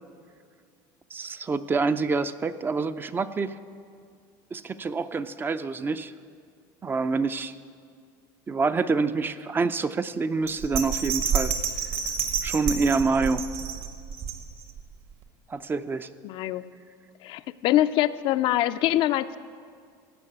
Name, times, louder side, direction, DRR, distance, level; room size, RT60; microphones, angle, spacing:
voice 1, 1.1-3.5 4.5-6.1 6.8-7.5 8.5-11.5 12.4-13.4 15.5-16.1, right 4 dB, 20° right, 12 dB, 0.4 m, -26 dB
Bell, 10.5-14.8 15.2-15.3, right 7 dB, 60° right, 1.6 m, -29 dB
voice 2, 16.2-16.6 17.2-19.4, left 14 dB, 55° left, 12 dB, 0.4 m, -24 dB
16.0 x 5.9 x 8.7 m, 2.2 s
supercardioid pair, 120°, 10 cm